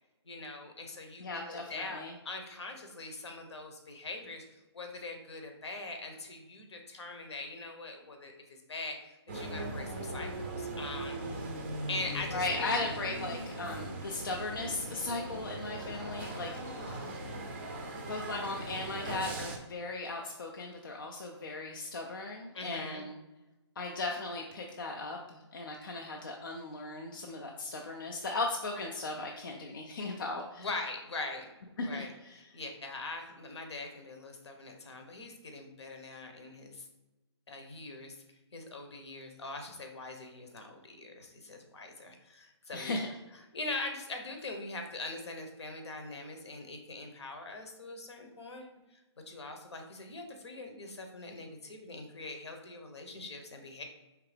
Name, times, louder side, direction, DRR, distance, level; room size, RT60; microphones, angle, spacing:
voice 1, 0.2-4.4 4.7-9.0 9.3-11.2 11.9-12.8 15.8-17.4 22.5-23.0 30.6-31.5 31.8-36.8 37.5-38.2 38.5-43.1 43.5-48.7 49.3-53.8, left 2 dB, 70° left, 4 dB, 1.1 m, -42 dB
voice 2, 1.2-2.1 12.3-17.1 18.1-23.2 23.8-30.7 31.8-32.3 42.7-43.1, left 3 dB, 50° left, 1 dB, 0.5 m, -37 dB
sound 1, 9.3-19.6, right 2 dB, 25° right, 0.5 m, -39 dB
4.7 x 3.3 x 3.3 m, 1.1 s
hypercardioid pair, 170°, 15 cm